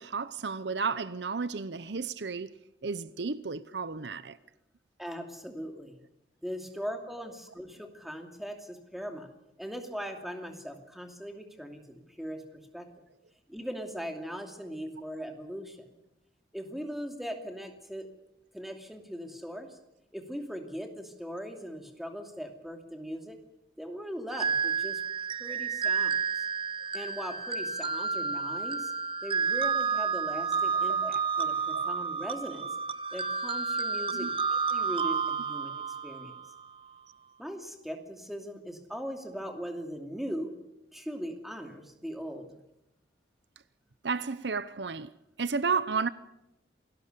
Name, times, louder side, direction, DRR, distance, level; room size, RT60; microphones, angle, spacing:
voice 1, 0.0-2.5 2.8-4.4 30.7-31.0 31.7-31.9 34.1-34.3 44.0-45.1 45.4-46.1, right 5 dB, 75° right, 0.8 m, -32 dB
voice 2, 5.0-6.0 6.4-9.3 9.6-13.1 13.5-15.9 16.5-18.1 18.5-19.8 20.1-23.4 23.8-25.0 25.3-26.2 26.9-28.9 29.2-32.7 33.1-36.3 37.4-40.5 40.9-42.6, equal, ahead, 2.6 m, -40 dB
sound 1, 24.3-36.7, right 5 dB, 30° right, 0.8 m, -30 dB
28.0 x 18.5 x 6.8 m
head